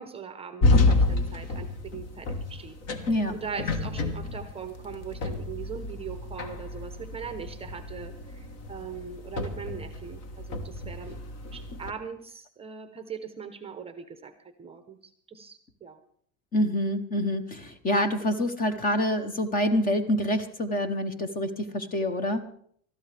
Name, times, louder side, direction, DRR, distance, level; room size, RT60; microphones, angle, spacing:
voice 1, 0.0-2.8 3.3-11.2 11.5-14.3 14.6-16.0, right 6 dB, 15° right, 8 dB, 0.8 m, -40 dB
sound 1, 0.6-11.9, left 3 dB, 40° left, 1.4 m, -29 dB
voice 2, 16.5-22.4, left 1 dB, 25° left, 11 dB, 0.9 m, -26 dB
20.5 x 13.5 x 3.4 m, 0.62 s
cardioid pair, 150°, 37 cm